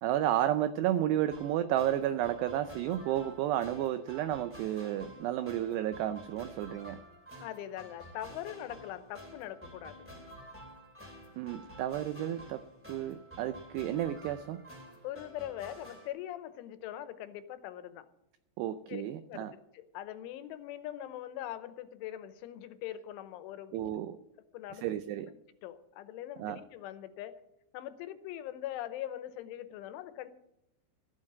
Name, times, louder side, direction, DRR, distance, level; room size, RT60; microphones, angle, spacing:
voice 1, 0.0-7.0 11.4-12.6 12.9-14.6 18.6-19.5 23.7-24.2 24.8-25.3 26.4-26.6, right 12 dB, 85° right, 11 dB, 2.4 m, -32 dB
sound 1, 1.3-16.1, equal, 5° right, 1.4 m, -51 dB
voice 2, 7.4-10.1 15.0-18.1 18.9-19.0 19.3-23.7 24.5-24.8 25.6-27.4 27.7-30.3, left 12 dB, 85° left, 12 dB, 3.3 m, -42 dB
15.0 x 7.5 x 8.6 m, 0.84 s
omnidirectional pair, 5.5 m